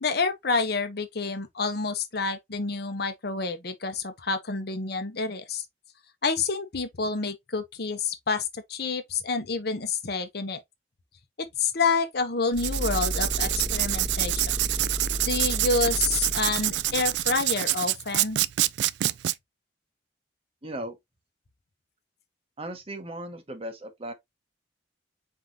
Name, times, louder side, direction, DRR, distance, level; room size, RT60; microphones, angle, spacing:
voice 1, 0.0-5.6 6.2-10.6 11.4-14.5 15.2-18.4, left 4 dB, 60° left, 0.9 m, -28 dB
sound 1, 12.5-17.4, equal, 5° right, 0.8 m, -33 dB
Writing, 12.5-19.3, right 15 dB, 65° right, 0.3 m, -26 dB
voice 2, 20.6-21.0 22.6-24.1, right 1 dB, 30° right, 1.0 m, -37 dB
4.6 x 3.8 x 2.7 m
head